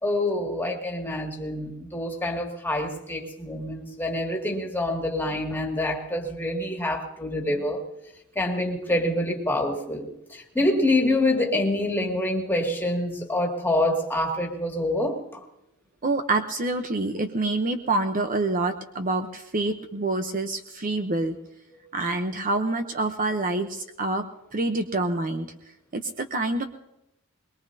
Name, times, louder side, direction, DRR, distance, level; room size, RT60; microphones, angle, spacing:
voice 1, 0.0-7.8 8.4-15.2, left 1 dB, 10° left, 1 dB, 2.2 m, -26 dB
voice 2, 16.0-21.4 21.9-24.2 24.5-25.5 25.9-26.6, right 2 dB, 40° right, 6 dB, 0.8 m, -26 dB
22.0 x 21.5 x 2.8 m, 0.86 s
head